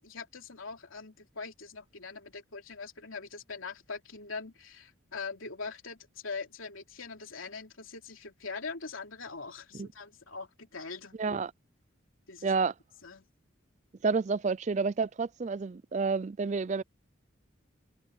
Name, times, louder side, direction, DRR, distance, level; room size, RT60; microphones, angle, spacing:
voice 1, 0.0-11.4 12.3-12.6 13.0-13.2, left 4 dB, 85° left, 3.2 m, -42 dB
voice 2, 11.2-11.5 12.4-12.7 14.0-16.8, right 4 dB, 35° right, 0.4 m, -29 dB
head